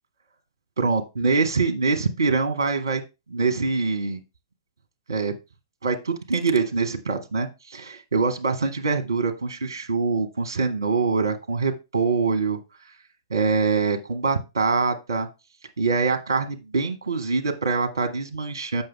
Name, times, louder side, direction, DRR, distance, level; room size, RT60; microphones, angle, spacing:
voice 1, 0.8-3.0 3.3-4.2 5.1-5.3 5.8-12.6 13.3-15.3 15.8-18.8, right 4 dB, 65° right, 5 dB, 1.4 m, -24 dB
7.5 x 5.9 x 4.6 m, 0.26 s
figure-of-eight pair, 110°, 2 cm